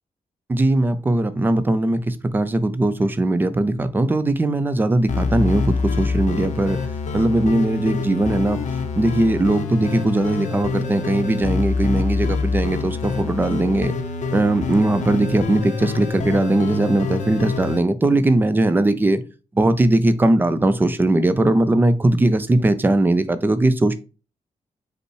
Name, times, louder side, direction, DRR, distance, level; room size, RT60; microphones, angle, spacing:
voice 1, 0.5-6.8 7.1-8.6 9.0-14.0 14.3-19.2 19.6-23.9, right 2 dB, 15° right, 0.4 m, -19 dB
sound 1, 5.1-17.8, left 4 dB, 70° left, 0.7 m, -26 dB
5.3 x 2.0 x 4.6 m
wide cardioid pair, 170°, 13 cm